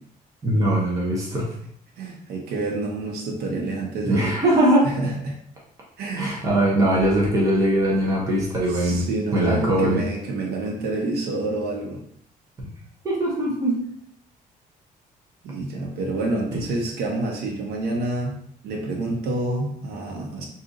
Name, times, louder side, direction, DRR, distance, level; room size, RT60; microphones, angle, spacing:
voice 1, 0.4-1.5 4.0-4.9 6.2-9.1 9.3-10.0 12.6-12.7 13.0-13.9 16.5-16.6, right 1 dB, 20° right, -4 dB, 0.7 m, -21 dB
voice 2, 2.0-4.4 4.8-5.4 6.0-6.5 8.7-12.0 15.4-18.4 18.6-20.5, right 2 dB, 85° right, 0 dB, 0.8 m, -28 dB
2.6 x 2.4 x 3.7 m, 0.67 s
cardioid pair, 165°, 16 cm